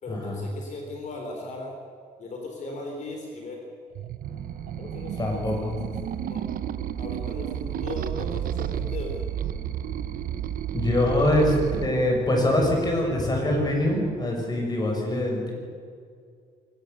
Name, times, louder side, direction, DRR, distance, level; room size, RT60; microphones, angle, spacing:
voice 1, 0.0-1.8 2.2-3.7 4.8-5.8 6.3-6.5 6.9-9.2, left 2 dB, 45° left, 1 dB, 3.9 m, -38 dB
sound 1, 4.0-11.9, right 10 dB, 55° right, 0.8 m, -32 dB
sound 2, 4.2-13.9, right 8 dB, 70° right, 7.1 m, -42 dB
voice 2, 5.2-5.8 10.7-11.5 11.8-15.5, left 1 dB, 25° left, 1 dB, 6.4 m, -24 dB
23.0 x 18.0 x 6.8 m, 2.2 s
cardioid pair, 130°, 17 cm